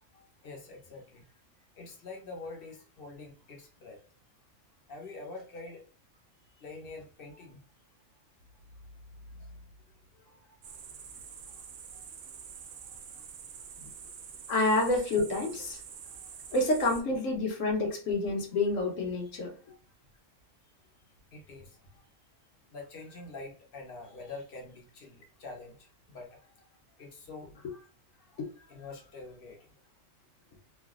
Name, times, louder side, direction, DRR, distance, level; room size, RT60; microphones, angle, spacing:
voice 1, 0.1-1.3 1.7-4.0 4.9-5.8 6.6-7.6 10.1-10.6 11.3-12.1 12.5-13.2 16.0-16.3 19.6-19.8 21.3-22.0 22.7-26.6 27.0-27.9 28.2-29.6, left 3 dB, 50° left, 0.9 m, -47 dB
sound 1, 10.6-17.0, right 6 dB, 70° right, 0.9 m, -47 dB
voice 2, 14.5-15.8 16.5-19.5 28.4-28.5, left 2 dB, 70° left, 1.2 m, -28 dB
3.2 x 2.5 x 2.4 m
omnidirectional pair, 1.4 m